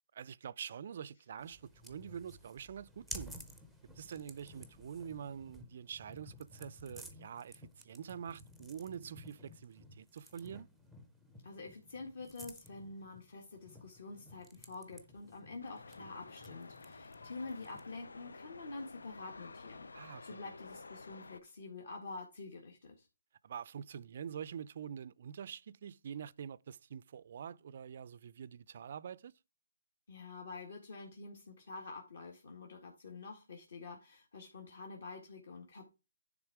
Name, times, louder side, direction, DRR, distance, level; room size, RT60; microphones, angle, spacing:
voice 1, 0.1-3.3 4.0-10.7 19.9-20.4 23.4-29.3, right 8 dB, 45° right, 0.4 m, -46 dB
sound 1, 1.4-18.0, equal, ahead, 0.6 m, -54 dB
voice 2, 11.4-23.1 30.1-35.9, left 3 dB, 55° left, 1.6 m, -47 dB
sound 2, 15.6-21.4, left 3 dB, 85° left, 0.5 m, -52 dB
9.9 x 3.6 x 4.7 m
hypercardioid pair, 165°, 0 cm